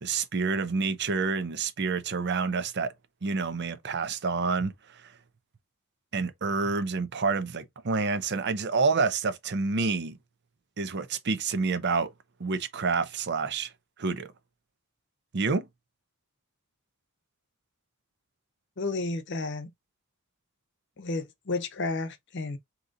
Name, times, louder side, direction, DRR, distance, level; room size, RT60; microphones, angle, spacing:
voice 1, 0.0-2.9 3.2-4.7 6.1-10.2 10.8-12.1 12.4-13.7 14.0-14.3 15.3-15.7, right 4 dB, 55° right, 0.7 m, -28 dB
voice 2, 18.8-19.7 21.0-22.6, left 3 dB, 60° left, 0.8 m, -32 dB
3.8 x 2.9 x 3.8 m
head